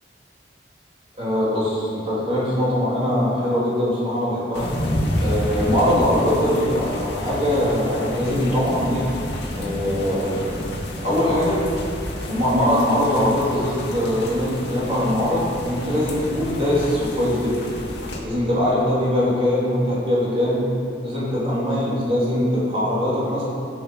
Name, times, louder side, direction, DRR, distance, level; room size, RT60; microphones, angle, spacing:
voice 1, 1.2-4.7 5.2-9.0 9.5-10.5 11.0-11.6 12.2-17.5 18.2-20.7 21.0-23.4, left 1 dB, 30° right, -8 dB, 3.1 m, -22 dB
sound 1, 4.5-18.2, left 1 dB, 70° left, 1.9 m, -30 dB
15.5 x 7.6 x 5.4 m, 2.7 s
head